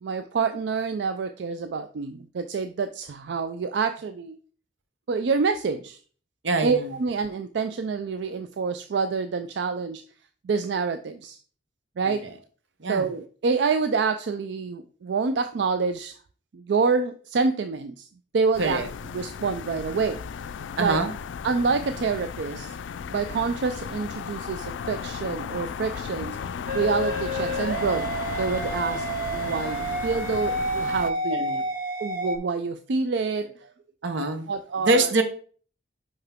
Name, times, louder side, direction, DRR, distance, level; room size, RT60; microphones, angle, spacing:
voice 1, 0.0-4.4 5.1-6.0 6.6-10.0 10.4-11.4 12.0-12.3 12.9-16.1 16.5-18.1 18.3-18.8 19.1-20.2 20.8-21.0 21.4-22.8 23.1-26.4 26.7-31.4 32.0-33.7 34.5-35.1, right 4 dB, 65° right, 9 dB, 0.4 m, -27 dB
voice 2, 6.4-6.9 12.0-12.2 12.8-13.1 18.6-18.9 20.8-21.1 31.3-31.6 34.0-34.5 34.9-35.2, right 2 dB, 90° right, 7 dB, 0.9 m, -24 dB
sound 1, 18.5-31.1, left 6 dB, 90° left, 0.3 m, -35 dB
sound 2, 26.7-32.4, right 1 dB, 50° right, 0.8 m, -29 dB
5.7 x 5.4 x 3.5 m, 0.42 s
head